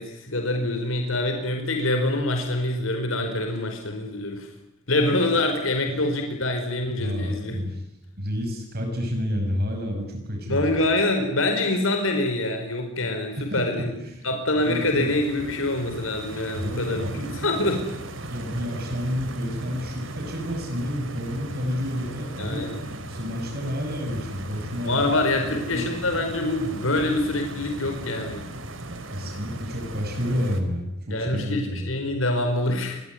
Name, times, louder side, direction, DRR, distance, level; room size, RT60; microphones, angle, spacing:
voice 1, 0.0-4.5 4.9-7.7 10.5-14.0 14.2-17.0 17.4-17.8 22.4-22.9 24.8-28.5 31.1-33.0, left 2 dB, 80° left, 5 dB, 4.8 m, -25 dB
voice 2, 7.0-7.8 8.1-10.8 13.4-14.3 14.6-15.1 16.5-17.3 18.3-22.7 23.1-25.2 25.7-25.9 29.1-31.8, equal, 50° right, 3 dB, 6.4 m, -30 dB
Stream, 14.6-30.6, right 1 dB, 70° right, 3.7 m, -37 dB
27.0 x 22.5 x 9.5 m, 0.85 s
head